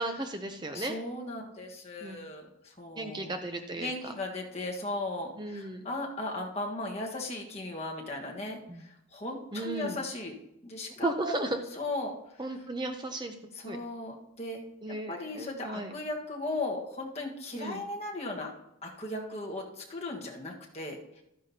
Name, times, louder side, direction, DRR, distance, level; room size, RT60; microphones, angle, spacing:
voice 1, 0.0-1.0 2.0-2.2 3.0-4.1 5.4-5.9 8.7-8.8 9.5-10.0 11.0-11.6 12.4-13.8 14.8-15.9 17.5-17.8, right 2 dB, 20° right, 6 dB, 0.6 m, -35 dB
voice 2, 0.7-3.3 3.8-10.4 10.6-11.4 11.8-12.1 13.6-14.6 14.9-18.5 18.8-21.2, left 2 dB, 30° left, -1 dB, 1.4 m, -37 dB
13.5 x 10.0 x 2.8 m, 0.83 s
head